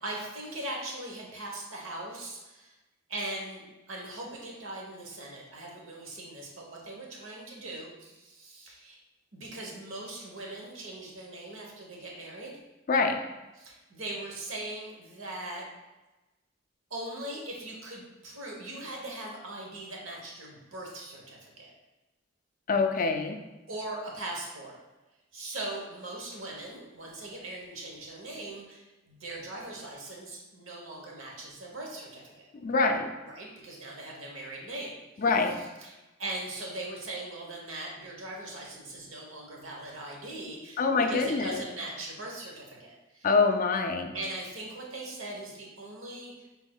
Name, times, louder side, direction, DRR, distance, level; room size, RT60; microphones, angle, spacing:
voice 1, 0.0-2.7 3.1-9.0 9.3-12.5 13.6-15.6 16.9-21.7 23.7-24.8 25.3-32.5 33.2-35.2 35.6-43.3 44.1-46.3, right 2 dB, 75° right, -1 dB, 1.0 m, -40 dB
voice 2, 12.9-13.2 22.7-23.4 32.6-33.1 35.2-35.6 40.8-41.6 43.2-44.1, left 4 dB, 45° left, 5 dB, 0.4 m, -25 dB
6.2 x 3.5 x 2.3 m, 1.1 s
head